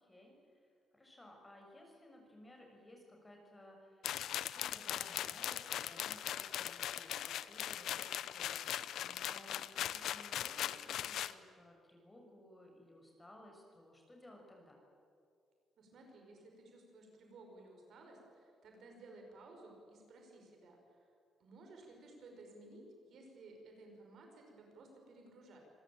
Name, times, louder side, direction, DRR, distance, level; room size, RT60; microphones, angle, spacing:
voice 1, 0.0-14.8, left 1 dB, 15° left, 1 dB, 6.5 m, -58 dB
sound 1, 4.0-11.3, left 11 dB, 75° left, 0.8 m, -40 dB
voice 2, 15.8-21.1 21.4-25.6, right 2 dB, 65° right, 2 dB, 6.1 m, -57 dB
26.5 x 18.5 x 9.0 m, 2.4 s
cardioid pair, 90°, 0 cm